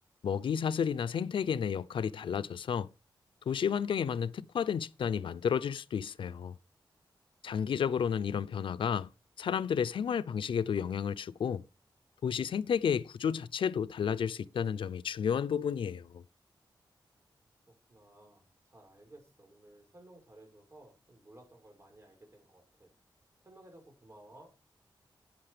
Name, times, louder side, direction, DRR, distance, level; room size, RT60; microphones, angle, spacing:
voice 1, 0.2-2.9 3.5-6.5 7.4-9.1 9.4-11.6 12.2-16.2, left 7 dB, 90° left, 0.6 m, -31 dB
voice 2, 17.9-22.9 23.4-24.5, right 1 dB, 35° right, 6.2 m, -56 dB
11.5 x 8.8 x 5.1 m
wide cardioid pair, 125°, 8 cm